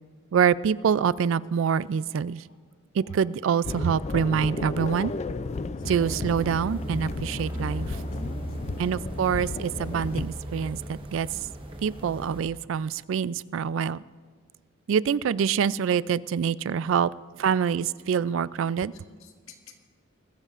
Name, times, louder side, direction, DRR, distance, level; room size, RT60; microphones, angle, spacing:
voice 1, 0.3-2.4 2.9-5.1 5.9-8.0 8.8-11.3 11.8-14.0 14.9-17.1 17.4-18.9, right 7 dB, 70° right, 19 dB, 0.3 m, -25 dB
sound 1, 3.6-10.3, left 3 dB, 30° left, 0.3 m, -34 dB
sound 2, 5.8-12.5, equal, 25° right, 1.1 m, -36 dB
voice 2, 19.1-19.7, left 5 dB, 80° left, 2 dB, 1.9 m, -51 dB
20.5 x 15.0 x 2.5 m, 1.5 s
head